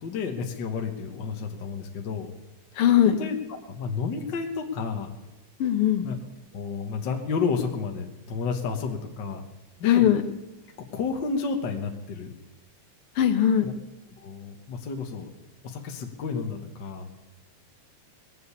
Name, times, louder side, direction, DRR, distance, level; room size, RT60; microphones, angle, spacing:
voice 1, 0.0-2.3 3.2-3.4 3.6-5.1 6.0-6.2 6.5-9.4 9.8-10.1 10.9-12.3 13.6-13.7 14.2-15.3 15.6-17.1, left 5 dB, 50° left, 3 dB, 1.5 m, -31 dB
voice 2, 2.8-3.2 5.6-6.1 9.9-10.2 13.2-13.7, left 10 dB, 70° left, 9 dB, 1.4 m, -20 dB
19.5 x 7.8 x 8.3 m, 1.1 s
omnidirectional pair, 3.3 m